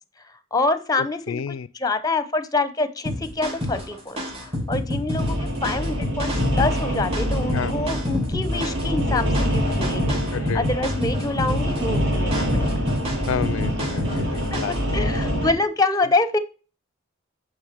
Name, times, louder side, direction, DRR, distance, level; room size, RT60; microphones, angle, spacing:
voice 1, 0.5-1.4 1.7-12.7 14.5-16.4, left 3 dB, 20° left, 0.7 m, -26 dB
voice 2, 1.3-1.7 7.5-7.7 10.3-10.7 13.3-15.5, left 7 dB, 75° left, 0.4 m, -30 dB
sound 1, 3.1-14.9, left 1 dB, 30° right, 2.5 m, -28 dB
sound 2, 5.2-15.5, equal, 60° right, 2.6 m, -25 dB
8.9 x 3.5 x 6.5 m
head